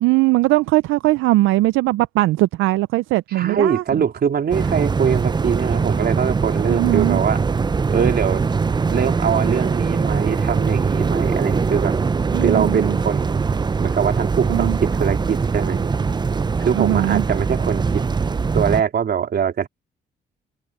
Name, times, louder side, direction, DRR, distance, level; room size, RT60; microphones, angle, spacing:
voice 1, 0.0-4.0 6.7-7.2 12.3-13.0 14.5-14.8 16.7-17.2, right 18 dB, 90° right, 0.4 m, -19 dB
voice 2, 3.3-7.4 7.9-8.4 8.9-11.9 12.4-13.4 13.8-15.9 16.6-18.0 18.5-19.7, right 7 dB, 55° right, 3.9 m, -22 dB
sound 1, 4.5-18.8, right 5 dB, 20° right, 0.5 m, -21 dB
open air
cardioid pair, 90°, 20 cm